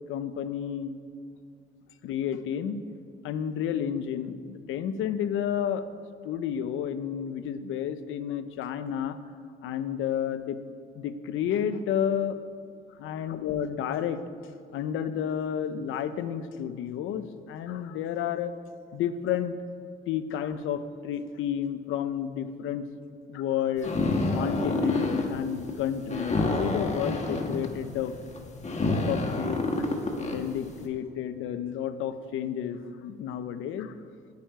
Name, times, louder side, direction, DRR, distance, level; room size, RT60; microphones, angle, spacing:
voice 1, 0.1-1.0 2.0-2.8 3.2-5.8 6.2-9.2 9.6-10.6 10.9-12.4 13.0-14.2 14.7-18.5 18.9-19.6 20.1-22.8 23.3-23.9 24.3-28.2 29.1-29.6 30.2-33.9, left 9 dB, 90° left, 11 dB, 0.8 m, -31 dB
sound 1, 23.8-30.7, left 2 dB, 35° left, 1.7 m, -28 dB
11.0 x 8.8 x 9.4 m, 2.3 s
cardioid pair, 90°, 20 cm